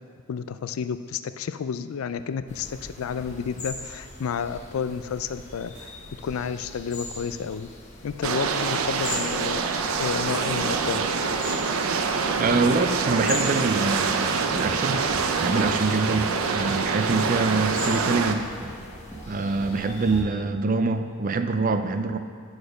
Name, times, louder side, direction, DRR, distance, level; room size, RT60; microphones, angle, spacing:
voice 1, 0.3-5.9 6.2-7.7 8.0-9.6 10.0-11.0, left 6 dB, 85° left, 12 dB, 0.4 m, -31 dB
sound 1, 2.5-20.2, left 2 dB, 35° left, 1.2 m, -41 dB
sound 2, 8.2-18.3, right 5 dB, 85° right, 0.6 m, -25 dB
voice 2, 12.4-15.1 15.4-18.5 19.3-22.2, right 3 dB, 40° right, 8 dB, 0.4 m, -25 dB
sound 3, 14.4-20.5, right 1 dB, 10° right, 1.4 m, -42 dB
8.5 x 4.8 x 6.4 m, 2.3 s
head